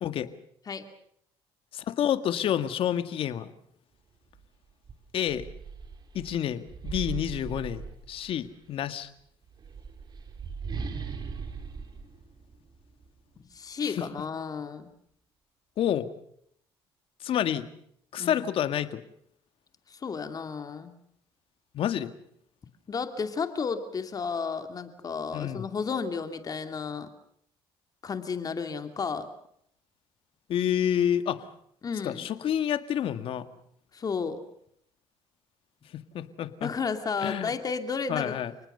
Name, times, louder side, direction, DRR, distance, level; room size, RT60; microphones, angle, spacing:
voice 1, 1.7-3.5 5.1-5.5 6.1-7.8 8.1-9.1 13.8-14.0 15.8-16.1 17.2-17.7 18.1-19.0 21.7-22.1 25.3-25.6 30.5-31.5 32.0-33.5 35.9-36.7 37.2-37.5 38.1-38.5, left 10 dB, 65° left, 11 dB, 1.9 m, -29 dB
sound 1, 4.3-4.5 4.9-8.5 9.4-13.1, right 5 dB, 45° right, 4.4 m, -39 dB
voice 2, 13.4-14.9 18.2-18.5 19.9-20.9 22.9-27.1 28.0-29.3 31.8-32.3 33.9-34.4 36.6-38.4, left 5 dB, 40° left, 8 dB, 2.7 m, -32 dB
30.0 x 19.5 x 6.8 m, 0.69 s
cardioid pair, 100°, 10 cm